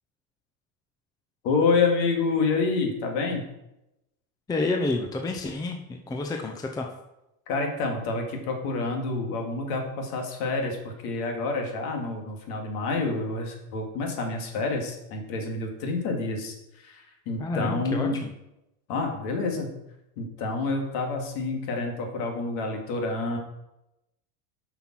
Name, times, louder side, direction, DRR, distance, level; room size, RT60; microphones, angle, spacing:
voice 1, 1.4-3.4 7.5-18.2 18.9-19.7 20.2-23.4, left 3 dB, 60° left, 2 dB, 2.4 m, -28 dB
voice 2, 4.5-6.9 17.4-18.3, left 2 dB, 10° left, 3 dB, 0.6 m, -29 dB
7.9 x 5.9 x 6.1 m, 0.90 s
supercardioid pair, 145°, 41 cm